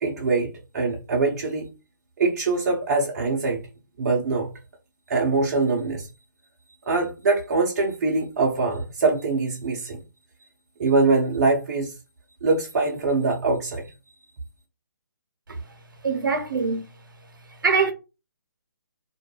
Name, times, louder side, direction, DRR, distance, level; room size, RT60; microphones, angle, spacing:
voice 1, 0.0-1.7 2.2-3.6 4.0-4.5 5.1-6.1 6.9-10.0 10.8-11.9 12.4-13.8, right 3 dB, 50° right, 0.6 m, -23 dB
voice 2, 16.0-16.9 17.6-17.9, right 5 dB, 75° right, 0.9 m, -23 dB
2.3 x 2.1 x 3.0 m
figure-of-eight pair, 145°, 11 cm